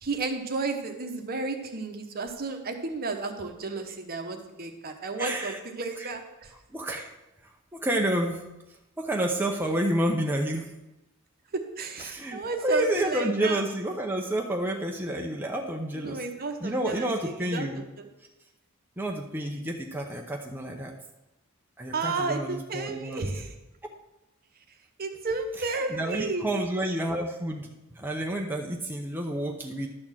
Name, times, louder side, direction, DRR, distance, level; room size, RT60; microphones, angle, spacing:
voice 1, 0.0-6.5 11.5-13.6 16.0-18.1 21.9-23.5 25.0-26.5, right 3 dB, 45° right, 5 dB, 1.0 m, -32 dB
voice 2, 5.2-5.6 6.0-6.1 6.7-7.1 7.7-8.5 9.0-10.7 12.0-17.8 19.0-20.9 21.8-23.3 25.7-29.9, right 1 dB, 10° right, 0 dB, 0.7 m, -29 dB
11.5 x 4.3 x 7.3 m, 0.96 s
head